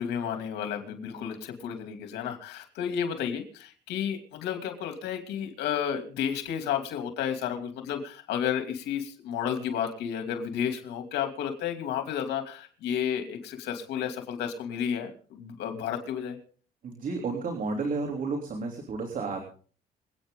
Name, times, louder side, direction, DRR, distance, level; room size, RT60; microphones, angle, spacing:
voice 1, 0.0-16.4, left 8 dB, 85° left, 5 dB, 2.7 m, -32 dB
voice 2, 16.8-19.4, right 4 dB, 50° right, 3 dB, 3.3 m, -31 dB
27.0 x 9.0 x 3.8 m, 0.43 s
cardioid pair, 105°, 17 cm